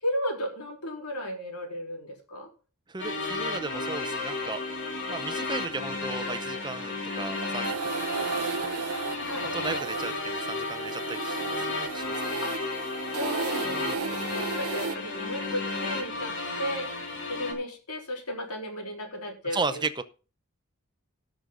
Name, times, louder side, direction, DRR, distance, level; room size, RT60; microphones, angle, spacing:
voice 1, 0.0-2.5 9.2-9.5 12.4-12.6 13.1-16.3 16.6-16.9 17.3-19.8, left 1 dB, 90° left, 2 dB, 3.9 m, -34 dB
voice 2, 2.9-4.6 5.1-8.5 8.7-8.9 9.4-11.5 11.9-12.2 13.6-14.0 19.5-20.0, right 3 dB, 20° right, 12 dB, 0.7 m, -35 dB
sound 1, 3.0-17.5, left 3 dB, 55° left, 3.2 m, -33 dB
sound 2, 7.3-15.0, right 5 dB, 85° right, 0.7 m, -34 dB
17.5 x 6.3 x 3.9 m, 0.35 s
head